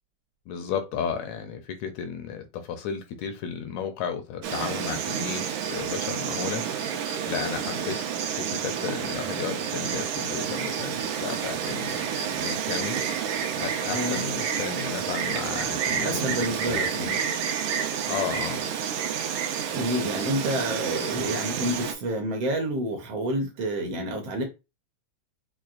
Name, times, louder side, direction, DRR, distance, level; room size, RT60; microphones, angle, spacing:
voice 1, 0.5-5.4 5.7-6.6 6.9-8.0 8.3-13.0 13.6-16.9 18.1-18.6, left 7 dB, 80° left, 1.7 m, -33 dB
Insect, 4.4-21.9, right 8 dB, 90° right, 2.1 m, -29 dB
voice 2, 13.9-14.2 16.0-17.2 19.7-24.4, right 1 dB, 70° right, 1.6 m, -29 dB
5.9 x 2.3 x 2.4 m
omnidirectional pair, 3.4 m